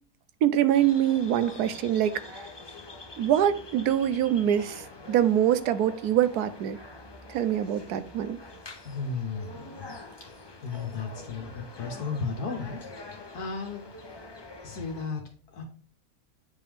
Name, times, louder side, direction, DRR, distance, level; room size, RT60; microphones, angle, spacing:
voice 1, 0.4-2.5 3.2-4.8 5.1-6.8 7.3-8.4, right 10 dB, 85° right, 1.2 m, -24 dB
sound 1, 0.7-15.1, left 2 dB, 35° left, 0.4 m, -45 dB
voice 2, 8.8-10.0 10.2-12.8 13.3-14.2 14.6-15.2 15.5-15.6, left 4 dB, 80° left, 1.5 m, -35 dB
8.4 x 5.3 x 3.5 m
omnidirectional pair, 1.6 m